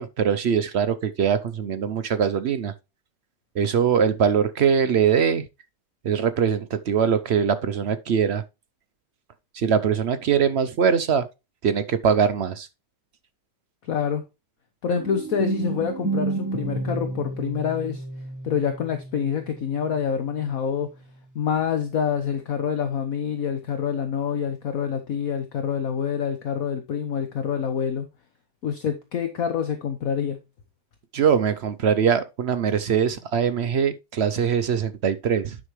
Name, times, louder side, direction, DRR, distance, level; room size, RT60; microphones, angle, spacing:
voice 1, 0.0-2.7 3.5-5.4 6.0-8.4 9.5-11.3 11.6-12.7 31.1-35.6, right 7 dB, 65° right, 0.6 m, -22 dB
voice 2, 13.8-14.2 14.8-18.0 18.4-20.9 21.3-28.1 28.6-30.4, left 7 dB, 55° left, 1.3 m, -26 dB
sound 1, 15.0-20.8, right 3 dB, 10° right, 1.1 m, -31 dB
9.6 x 6.4 x 3.1 m
omnidirectional pair, 1.9 m